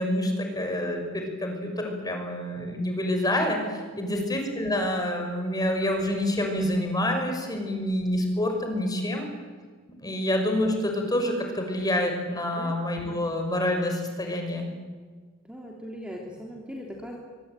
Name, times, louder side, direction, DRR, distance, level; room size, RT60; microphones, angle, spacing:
voice 1, 0.0-9.3 10.0-14.7, left 1 dB, 20° left, 3 dB, 5.9 m, -27 dB
voice 2, 3.9-4.2 12.5-12.8 15.4-17.2, equal, 5° right, -1 dB, 3.3 m, -39 dB
24.5 x 24.0 x 9.1 m, 1.5 s
head